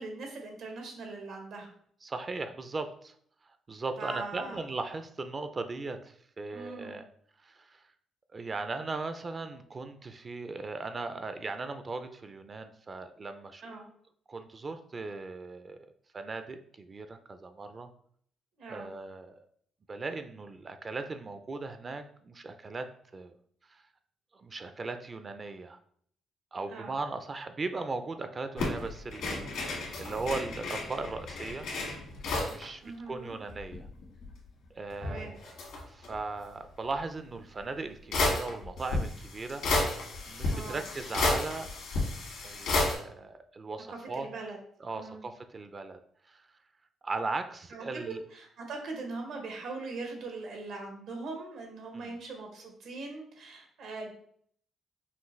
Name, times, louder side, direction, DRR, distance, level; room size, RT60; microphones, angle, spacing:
voice 1, 0.0-1.7 4.0-4.6 6.5-7.0 13.6-13.9 18.6-18.9 26.7-27.0 32.8-33.3 35.0-35.3 40.5-40.8 43.9-44.6 44.9-45.2 47.7-47.8 48.3-54.1, right 3 dB, 80° right, 2 dB, 1.1 m, -41 dB
voice 2, 2.0-3.1 3.7-7.1 7.4-7.8 8.3-13.6 14.3-15.8 16.1-17.9 18.7-19.4 19.9-23.4 23.7-23.8 24.3-25.8 26.5-31.7 32.5-33.9 34.7-35.4 35.8-40.0 40.3-41.7 42.4-44.3 44.8-46.0 46.3-46.5 47.0-48.2 51.9-52.2, right 3 dB, 35° right, 9 dB, 0.4 m, -38 dB
sound 1, 28.6-32.6 33.0-33.1 33.2-34.3 34.9-36.2 37.3-37.4 38.1-42.9, left 2 dB, 80° left, 1.7 m, -32 dB
5.7 x 2.4 x 3.1 m, 0.63 s
cardioid pair, 90°, 0 cm